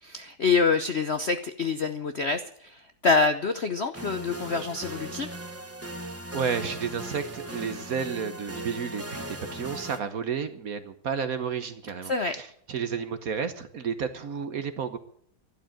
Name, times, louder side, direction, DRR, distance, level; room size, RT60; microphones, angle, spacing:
voice 1, 0.0-5.3 12.0-12.3, left 4 dB, 55° left, 9 dB, 0.7 m, -26 dB
sound 1, 3.9-10.0, right 1 dB, 10° right, 1.0 m, -38 dB
voice 2, 6.3-15.0, right 6 dB, 55° right, 11 dB, 1.3 m, -32 dB
12.0 x 11.5 x 9.0 m, 0.66 s
omnidirectional pair, 2.2 m